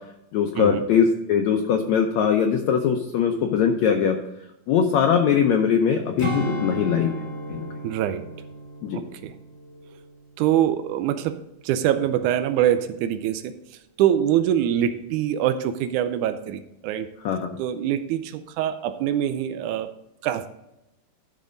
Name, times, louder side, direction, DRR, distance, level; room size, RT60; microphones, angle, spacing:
voice 1, 0.3-4.2 4.7-7.1 7.5-7.7 8.8-9.0 17.2-17.6, left 7 dB, 80° left, 4 dB, 1.6 m, -21 dB
Strum, 6.2-10.9 11.3-11.5, equal, 30° left, 0.5 m, -34 dB
voice 2, 7.8-8.3 8.9-9.3 10.4-11.4 11.6-13.5 14.0-17.1 17.6-19.9 20.2-20.5, right 10 dB, 85° right, 10 dB, 1.8 m, -24 dB
12.5 x 5.2 x 5.2 m, 0.85 s
omnidirectional pair, 4.1 m